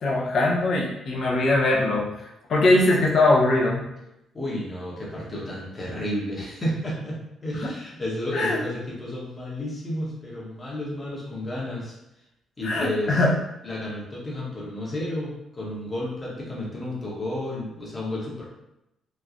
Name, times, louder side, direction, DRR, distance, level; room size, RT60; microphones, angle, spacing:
voice 1, 0.0-2.1 2.5-3.8 7.6-7.7 8.3-8.6 12.6-13.3, left 2 dB, 60° left, -2 dB, 0.7 m, -21 dB
voice 2, 4.3-12.0 12.6-13.2 13.6-18.4, left 1 dB, 25° left, -4 dB, 1.0 m, -32 dB
3.0 x 2.1 x 2.5 m, 0.89 s
cardioid pair, 90°, 0 cm